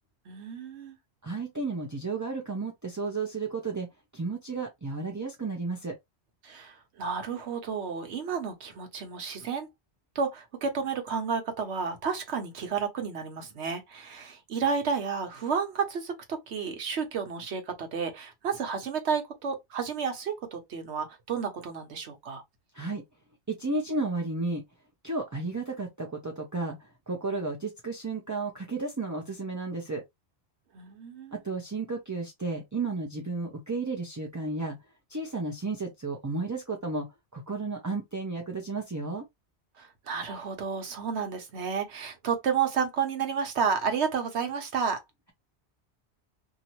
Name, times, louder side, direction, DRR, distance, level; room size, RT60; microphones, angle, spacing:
voice 1, 0.3-1.0 6.4-9.7 10.1-22.4 30.7-31.4 39.8-45.0, right 6 dB, 70° right, 1.1 m, -31 dB
voice 2, 1.2-6.0 22.7-23.0 23.5-24.6 25.0-30.0 31.3-34.8 35.1-39.3, right 3 dB, 25° right, 0.4 m, -33 dB
2.8 x 2.5 x 2.9 m
omnidirectional pair, 1.2 m